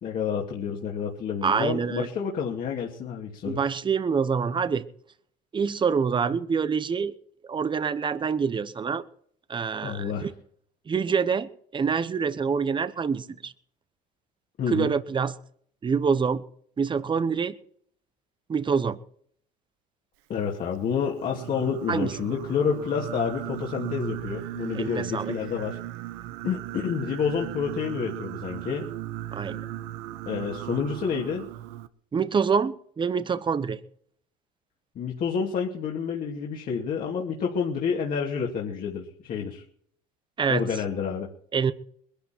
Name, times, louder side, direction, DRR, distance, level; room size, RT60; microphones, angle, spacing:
voice 1, 0.0-3.6 9.8-10.3 14.6-14.9 20.3-25.8 26.4-28.9 30.3-31.5 34.9-39.6 40.5-41.3, left 6 dB, 50° left, 2.7 m, -29 dB
voice 2, 1.4-2.1 3.4-4.8 5.5-7.2 7.5-9.0 9.5-10.3 10.9-13.5 14.7-15.4 15.8-16.4 16.8-17.6 18.5-19.0 21.9-22.1 24.7-25.3 29.3-29.7 32.1-33.8 40.4-40.7 41.5-41.7, right 6 dB, 25° right, 1.0 m, -26 dB
Singing, 21.2-31.9, right 15 dB, 80° right, 1.0 m, -37 dB
21.5 x 11.5 x 4.5 m
supercardioid pair, 100°, 19 cm